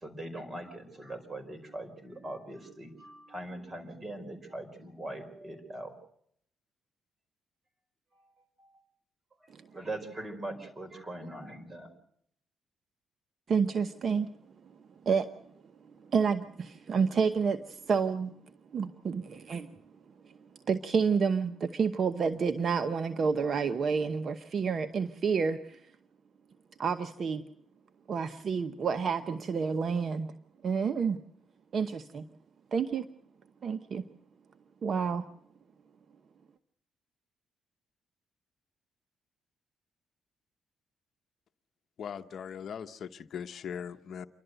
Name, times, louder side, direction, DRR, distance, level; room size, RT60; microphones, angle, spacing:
voice 1, 0.0-5.9 8.6-8.7 9.7-11.9, right 1 dB, 25° right, 5 dB, 4.9 m, -41 dB
voice 2, 13.5-14.3 15.0-15.3 16.1-18.3 18.7-19.7 20.7-25.8 26.8-27.4 28.1-30.3 30.6-31.2 31.7-32.2 32.7-33.1 33.6-34.0 34.8-35.2, right 5 dB, 50° right, 10 dB, 1.0 m, -29 dB
voice 3, 42.0-44.3, left 7 dB, 60° left, 9 dB, 0.9 m, -40 dB
28.0 x 12.0 x 8.0 m, 0.68 s
cardioid pair, 90°, 0 cm